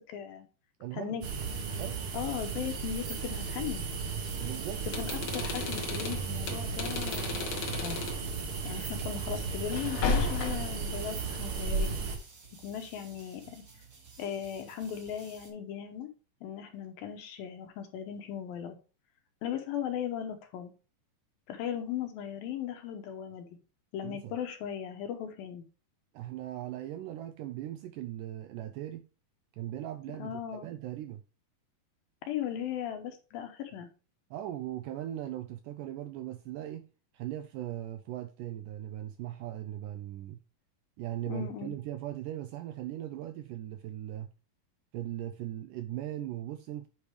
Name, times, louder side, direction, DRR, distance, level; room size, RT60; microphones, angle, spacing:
voice 1, 0.1-0.5 0.9-1.2 2.1-3.8 5.0-8.0 8.6-12.0 12.6-13.6 14.2-16.1 16.4-18.8 19.4-20.7 21.5-23.6 23.9-25.6 30.2-30.7 32.2-33.9 41.3-41.8, left 9 dB, 80° left, 2.7 m, -37 dB
voice 2, 0.8-1.2 1.8-2.1 4.4-4.9 24.0-24.4 26.1-29.1 29.6-31.2 34.3-36.9 37.1-40.4 41.0-44.3 44.9-46.9, right 13 dB, 85° right, 1.9 m, -39 dB
sound 1, 1.2-12.2, right 5 dB, 65° right, 1.4 m, -35 dB
sound 2, 2.2-15.5, right 4 dB, 50° right, 1.1 m, -54 dB
sound 3, 4.8-8.2 9.7-10.8, left 4 dB, 60° left, 2.0 m, -33 dB
8.4 x 4.8 x 3.3 m
omnidirectional pair, 4.2 m